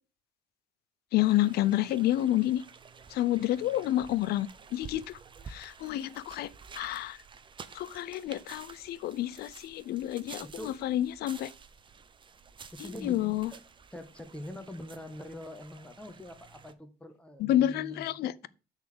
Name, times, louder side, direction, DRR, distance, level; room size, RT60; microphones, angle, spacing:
voice 1, 1.1-2.6 3.1-5.2 5.5-7.2 7.7-11.5 13.0-13.5 17.4-18.5, left 13 dB, 70° left, 0.5 m, -29 dB
sound 1, 1.2-16.7, right 5 dB, 30° right, 0.7 m, -51 dB
voice 2, 10.4-10.8 12.7-13.6 13.9-18.5, left 1 dB, 5° left, 1.3 m, -44 dB
6.8 x 4.1 x 6.6 m
cardioid pair, 110°, 17 cm